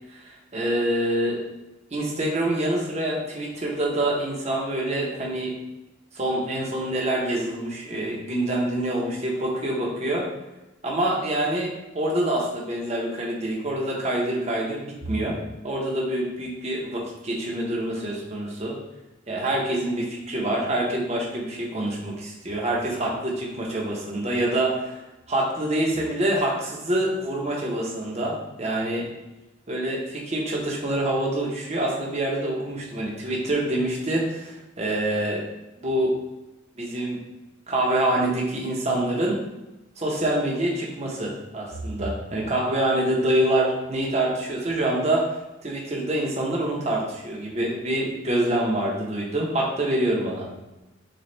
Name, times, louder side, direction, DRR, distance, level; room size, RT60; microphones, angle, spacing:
voice 1, 0.1-1.4 1.9-5.5 6.1-10.3 10.8-15.4 15.6-18.8 19.3-25.0 25.3-29.1 29.7-35.4 35.8-36.1 36.8-37.2 37.7-39.4 40.0-45.2 45.6-50.5, right 1 dB, 35° right, -2 dB, 0.9 m, -26 dB
6.7 x 2.4 x 3.3 m, 0.99 s
head